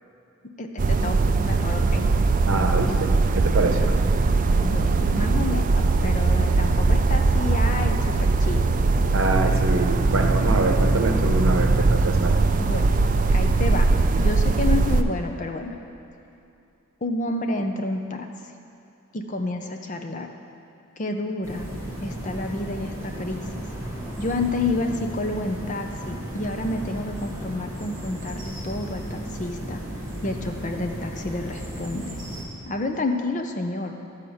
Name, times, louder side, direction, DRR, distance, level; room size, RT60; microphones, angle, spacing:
voice 1, 0.6-2.1 4.6-8.8 12.6-12.9 13.3-13.9 14.1-15.8 17.0-18.3 19.1-20.3 21.0-21.7 22.0-23.6 24.2-29.8 30.2-32.2 32.7-34.0, left 2 dB, 35° left, 5 dB, 0.6 m, -29 dB
sound 1, 0.8-15.0, right 3 dB, 35° right, 0.3 m, -20 dB
voice 2, 2.5-3.9 9.1-12.4, right 2 dB, 65° right, 3 dB, 0.9 m, -25 dB
sound 2, 21.4-32.4, right 1 dB, 15° right, 1.8 m, -34 dB
12.5 x 4.9 x 7.0 m, 2.7 s
head